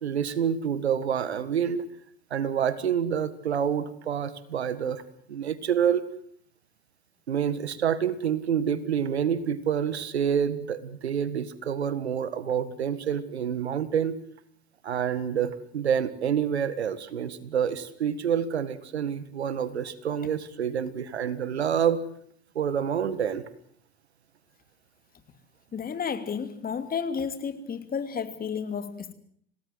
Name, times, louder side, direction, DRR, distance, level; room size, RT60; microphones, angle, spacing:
voice 1, 0.0-1.8 2.3-6.0 7.3-14.2 14.8-22.0 22.6-23.4, right 8 dB, 85° right, 16 dB, 1.8 m, -27 dB
voice 2, 25.7-29.1, left 6 dB, 30° left, 10 dB, 2.9 m, -32 dB
27.0 x 18.5 x 7.9 m, 0.64 s
hypercardioid pair, 85°, 32 cm